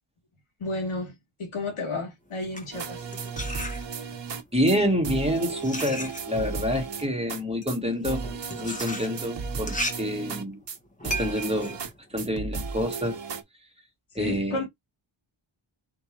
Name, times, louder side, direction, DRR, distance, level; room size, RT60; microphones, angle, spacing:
voice 1, 0.6-1.1 1.4-3.0 14.1-14.7, left 2 dB, 80° left, 2.0 m, -32 dB
sound 1, 2.3-4.3 5.0-12.9, equal, 15° left, 1.2 m, -36 dB
sound 2, 2.7-4.4 4.7-4.8 5.0-7.4 7.7-7.8 8.0-10.8 11.0-11.9 12.2-13.4, right 5 dB, 60° right, 1.1 m, -35 dB
voice 2, 4.5-8.2 8.6-10.6 11.0-11.8 12.1-13.2 14.2-14.6, equal, 10° right, 1.9 m, -27 dB
4.8 x 3.5 x 3.0 m
wide cardioid pair, 120°, 49 cm